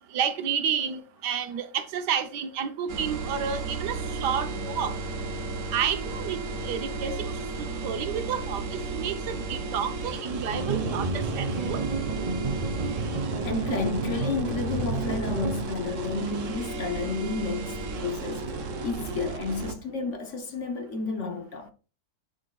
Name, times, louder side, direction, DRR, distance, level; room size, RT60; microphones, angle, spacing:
voice 1, 0.1-4.9 5.7-7.3 7.6-11.8, right 8 dB, 90° right, 1.5 m, -30 dB
sound 1, 2.9-19.7, right 3 dB, 55° right, 1.2 m, -34 dB
sound 2, 10.5-15.6, right 3 dB, 35° right, 0.6 m, -30 dB
voice 2, 13.1-21.7, left 4 dB, 50° left, 1.3 m, -32 dB
10.0 x 4.4 x 2.4 m
omnidirectional pair, 1.7 m